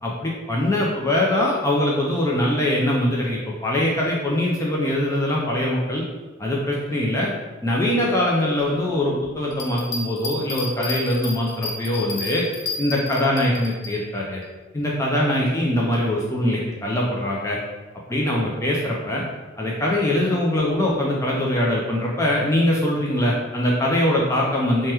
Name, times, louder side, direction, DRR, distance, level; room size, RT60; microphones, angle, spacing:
voice 1, 0.0-6.0 6.4-7.3 7.6-12.4 12.8-14.4 14.7-17.6 18.1-19.2 19.6-24.9, left 1 dB, 15° left, -4 dB, 0.3 m, -22 dB
Bell, 9.5-13.9 14.4-14.5, left 3 dB, 85° left, 0.6 m, -31 dB
2.8 x 2.1 x 3.3 m, 1.3 s
head